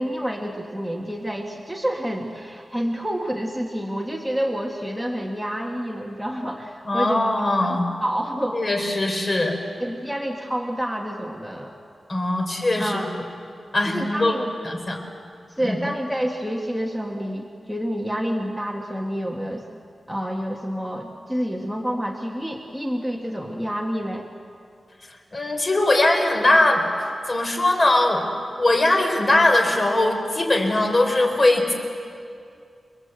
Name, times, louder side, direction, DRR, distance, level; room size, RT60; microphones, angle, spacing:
voice 1, 0.0-7.2 8.0-8.6 9.8-11.7 12.8-13.1 13.9-14.5 15.5-19.6 20.1-24.3, equal, 5° right, 0 dB, 1.5 m, -28 dB
voice 2, 6.9-7.8 8.5-9.6 12.1-13.1 13.7-14.4 14.6-15.0 15.6-15.8 25.3-28.2 28.6-31.7, left 2 dB, 35° left, 3 dB, 3.9 m, -20 dB
30.0 x 21.5 x 8.0 m, 2.4 s
wide cardioid pair, 130°, 0 cm